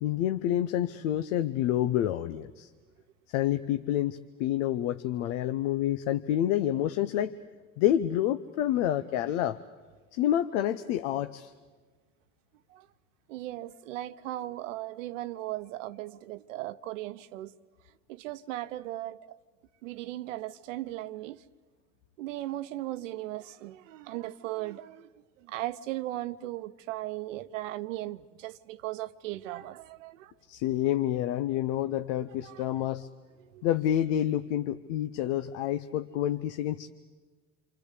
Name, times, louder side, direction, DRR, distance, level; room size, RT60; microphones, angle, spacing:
voice 1, 0.0-2.7 3.3-7.3 7.8-9.6 10.1-11.5 30.5-33.1 33.6-36.9, left 12 dB, 75° left, 0.9 m, -28 dB
voice 2, 13.3-17.5 18.1-19.2 19.8-21.4 22.2-30.3 32.4-32.9 33.4-33.7, right 15 dB, 80° right, 0.9 m, -37 dB
28.5 x 24.5 x 8.3 m
hypercardioid pair, 65°, 37 cm